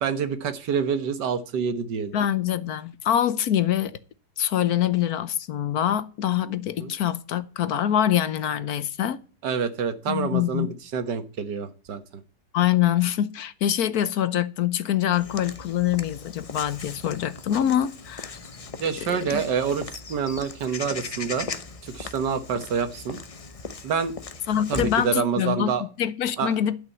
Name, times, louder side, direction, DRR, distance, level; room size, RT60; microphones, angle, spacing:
voice 1, 0.0-2.1 6.8-6.9 9.4-12.0 18.8-21.5 21.8-23.2 23.8-24.1 24.7-25.9 26.4-26.6, right 6 dB, 80° right, 1.8 m, -27 dB
voice 2, 2.1-4.0 4.4-9.2 10.1-10.7 12.5-18.3 19.1-19.4 24.5-26.8, left 11 dB, 65° left, 1.2 m, -25 dB
Walk footsteps / Bird vocalization bird call bird song, 15.1-25.1, left 4 dB, 45° left, 0.4 m, -38 dB
11.5 x 5.9 x 8.4 m
omnidirectional pair, 1.9 m